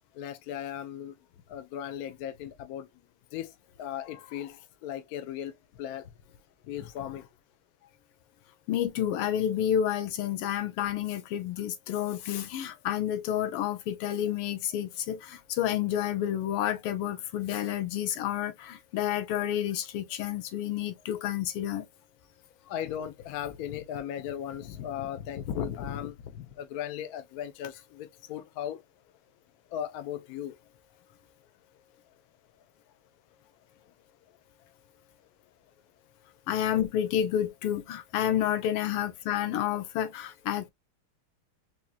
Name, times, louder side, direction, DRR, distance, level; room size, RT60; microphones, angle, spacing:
voice 1, 0.1-1.1 1.5-2.9 3.3-6.1 6.6-7.3 22.6-28.8 29.7-30.6, left 10 dB, 75° left, 0.8 m, -37 dB
voice 2, 8.7-21.9 36.5-40.7, left 10 dB, 90° left, 1.7 m, -30 dB
4.5 x 2.8 x 2.2 m
omnidirectional pair, 2.4 m